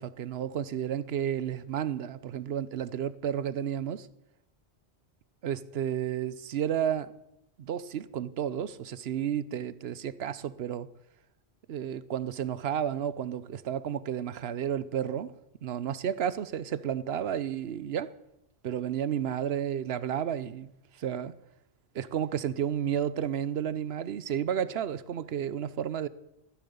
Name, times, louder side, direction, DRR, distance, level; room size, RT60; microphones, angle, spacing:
voice 1, 0.0-4.1 5.4-7.1 7.6-10.9 11.7-15.3 15.6-18.1 18.6-20.7 21.0-21.3 21.9-26.1, right 9 dB, 75° right, 0.9 m, -32 dB
14.0 x 10.0 x 7.0 m
omnidirectional pair, 1.1 m